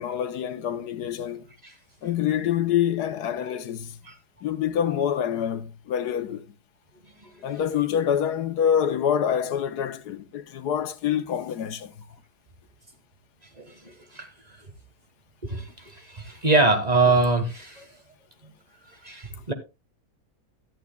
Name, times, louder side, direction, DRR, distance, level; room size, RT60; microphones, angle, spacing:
voice 1, 0.0-1.5 2.0-4.0 4.4-6.5 7.4-11.9, left 9 dB, 85° left, 1.5 m, -26 dB
voice 2, 13.6-14.3 15.4-17.8 19.0-19.5, right 3 dB, 25° right, 1.5 m, -24 dB
14.0 x 11.0 x 2.3 m
omnidirectional pair, 1.7 m